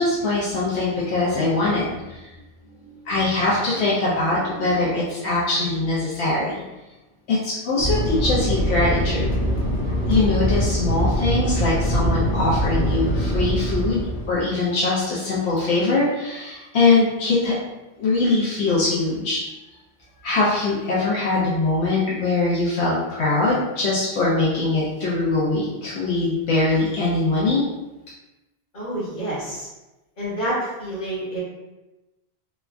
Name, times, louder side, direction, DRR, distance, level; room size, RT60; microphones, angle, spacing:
voice 1, 0.0-2.3 3.0-6.6 7.3-9.3 10.1-17.5 18.0-19.4 20.2-27.6, left 3 dB, 85° left, -7 dB, 0.9 m, -22 dB
Fixed-wing aircraft airplane, 7.8-14.5, equal, 40° left, 0.7 m, -23 dB
voice 2, 28.7-29.7 30.2-31.4, right 1 dB, 55° left, -11 dB, 1.3 m, -28 dB
3.2 x 2.2 x 2.4 m, 1.0 s
omnidirectional pair, 1.1 m